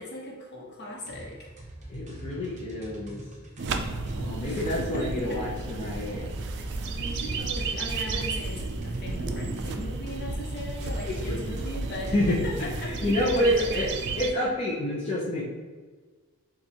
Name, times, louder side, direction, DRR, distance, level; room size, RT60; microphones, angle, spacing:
voice 1, 0.0-1.5 4.4-5.4 6.9-13.9, left 1 dB, 50° left, -2 dB, 1.0 m, -38 dB
sound 1, 1.0-14.0, right 1 dB, 35° right, 0.8 m, -41 dB
voice 2, 1.9-3.2 4.2-6.2 11.0-11.6 12.1-12.4 12.8-13.9 14.2-15.4, left 1 dB, 30° left, -7 dB, 0.7 m, -28 dB
sound 2, 3.6-14.3, right 3 dB, 55° right, 0.4 m, -33 dB
7.1 x 2.4 x 2.8 m, 1.4 s
head